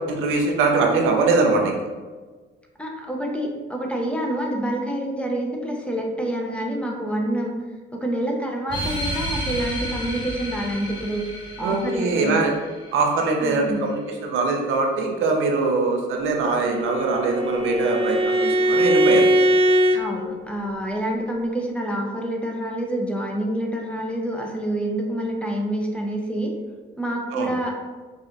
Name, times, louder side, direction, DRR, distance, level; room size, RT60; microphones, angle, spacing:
voice 1, 0.1-1.8 11.6-12.5 12.9-19.3 27.3-27.5, right 3 dB, 85° right, 1 dB, 0.7 m, -22 dB
voice 2, 2.8-7.5 7.9-11.3 11.6-12.4 13.4-13.9 19.9-26.5 27.0-27.8, right 1 dB, 5° left, 0 dB, 0.7 m, -27 dB
sound 1, 8.7-13.7, equal, 25° left, 1.2 m, -32 dB
Bowed string instrument, 16.5-20.0, equal, 30° right, 0.5 m, -20 dB
4.8 x 2.6 x 2.6 m, 1.4 s
cardioid pair, 90°, 20 cm